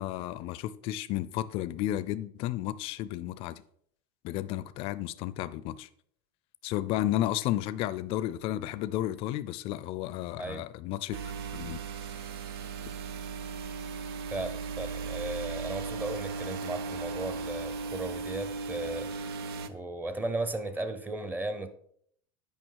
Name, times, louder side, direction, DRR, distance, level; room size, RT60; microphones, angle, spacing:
voice 1, 0.0-3.6 4.2-5.9 6.6-11.2 11.5-11.8, left 13 dB, 50° left, 16 dB, 0.5 m, -32 dB
sound 1, 11.1-19.7, right 4 dB, 85° right, 0.7 m, -37 dB
voice 2, 14.3-19.1 19.7-21.7, right 2 dB, 15° right, 10 dB, 0.7 m, -36 dB
8.9 x 5.3 x 4.7 m, 0.66 s
supercardioid pair, 135°, 13 cm